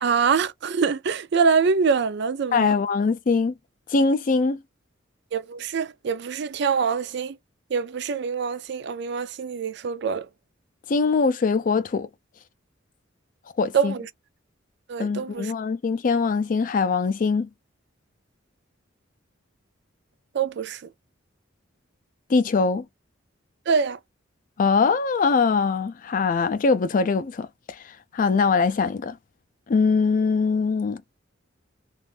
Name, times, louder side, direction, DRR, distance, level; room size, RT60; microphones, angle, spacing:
voice 1, 0.0-2.7 5.3-7.4 7.7-10.3 13.7-14.1 14.9-15.5 20.3-20.9 23.7-24.0, right 5 dB, 60° right, 0.4 m, -24 dB
voice 2, 2.5-3.5 3.9-4.6 10.9-12.1 13.6-13.9 15.0-17.5 22.3-22.8 24.6-29.2 29.7-31.0, left 4 dB, 45° left, 0.4 m, -22 dB
2.5 x 2.4 x 3.2 m
head